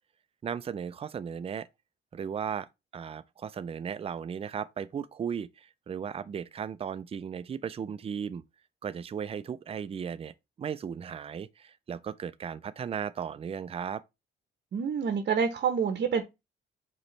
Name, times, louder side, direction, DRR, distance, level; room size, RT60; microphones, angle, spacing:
voice 1, 0.4-1.7 2.1-2.7 2.9-8.4 8.8-14.0, right 7 dB, 30° right, 0.4 m, -36 dB
voice 2, 14.7-16.2, right 6 dB, 55° right, 0.8 m, -27 dB
5.0 x 3.2 x 3.2 m
cardioid pair, 90°, 20 cm